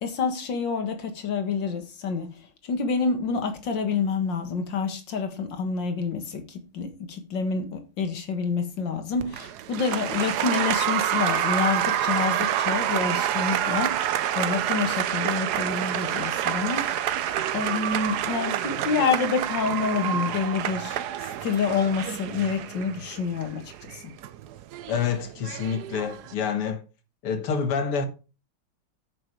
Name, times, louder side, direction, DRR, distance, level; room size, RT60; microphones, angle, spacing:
voice 1, 0.0-2.3 2.6-16.9 17.5-21.0 21.4-24.1, left 5 dB, 55° left, 2.2 m, -28 dB
Applause, 9.2-26.3, right 11 dB, 70° right, 0.9 m, -28 dB
voice 2, 24.9-26.8 27.2-28.1, left 6 dB, 80° left, 2.3 m, -27 dB
9.1 x 6.6 x 5.0 m
omnidirectional pair, 2.4 m